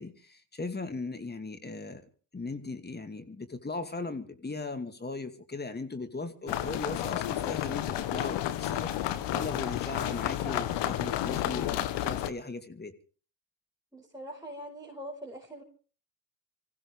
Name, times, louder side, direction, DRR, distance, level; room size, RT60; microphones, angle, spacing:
voice 1, 0.0-2.1 2.3-12.9, left 3 dB, 20° left, 2.4 m, -38 dB
ambience railway station city Voronezh, 6.5-12.3, left 12 dB, 70° left, 1.3 m, -31 dB
voice 2, 13.9-15.6, equal, 10° right, 4.9 m, -42 dB
25.5 x 16.0 x 3.4 m
hypercardioid pair, 60°, 43 cm